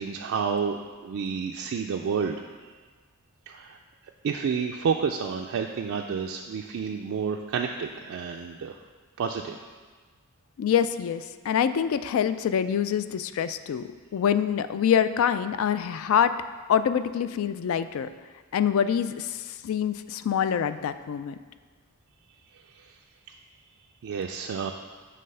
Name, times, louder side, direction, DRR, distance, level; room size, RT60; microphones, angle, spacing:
voice 1, 0.0-2.4 2.6-2.7 3.5-3.8 4.2-8.7 9.2-9.6 22.8-22.9 24.0-24.7, right 6 dB, 65° right, 2 dB, 0.3 m, -30 dB
voice 2, 10.6-13.9 14.1-16.3 16.7-18.1 18.5-21.4, left 8 dB, 65° left, 13 dB, 0.3 m, -25 dB
7.5 x 3.3 x 5.4 m, 1.5 s
head